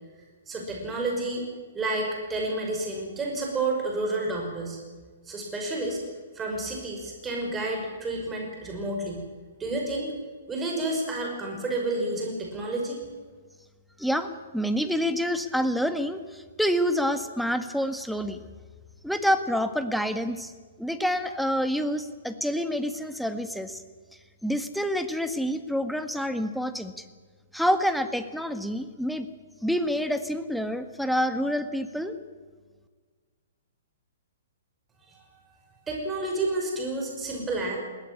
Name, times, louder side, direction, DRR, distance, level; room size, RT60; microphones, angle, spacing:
voice 1, 0.5-1.4 1.7-4.8 5.2-6.0 6.3-9.2 9.6-10.1 10.5-13.0 35.1-37.8, right 2 dB, 15° right, 0 dB, 5.9 m, -30 dB
voice 2, 14.0-18.4 19.0-20.5 20.8-23.8 24.4-27.0 27.5-29.3 29.6-32.2, equal, ahead, 9 dB, 1.7 m, -27 dB
21.0 x 17.5 x 9.8 m, 1.5 s
figure-of-eight pair, 120°, 0 cm